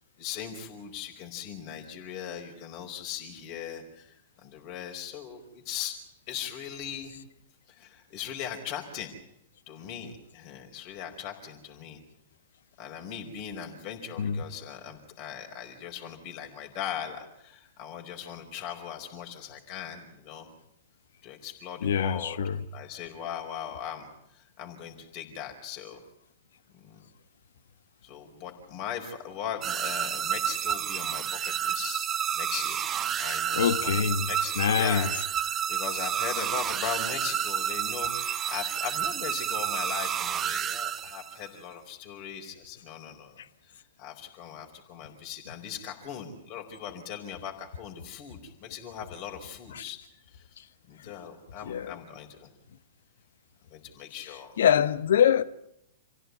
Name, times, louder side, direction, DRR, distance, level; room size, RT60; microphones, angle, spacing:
voice 1, 0.2-6.0 6.3-7.1 7.7-9.1 9.7-12.0 12.8-20.5 21.2-22.4 22.7-26.0 26.7-27.0 28.0-32.1 32.3-32.9 33.2-34.0 34.2-35.1 35.5-43.3 43.6-50.0 50.3-52.5 53.7-54.6, left 9 dB, 40° left, 4.7 m, -39 dB
voice 2, 21.8-22.6 33.5-34.3 34.6-35.1 49.7-49.8 51.6-52.0 54.6-55.4, left 8 dB, 65° left, 1.2 m, -24 dB
sound 1, 29.6-41.5, right 9 dB, 25° right, 1.1 m, -30 dB
28.0 x 16.0 x 9.5 m
figure-of-eight pair, 110°, 0 cm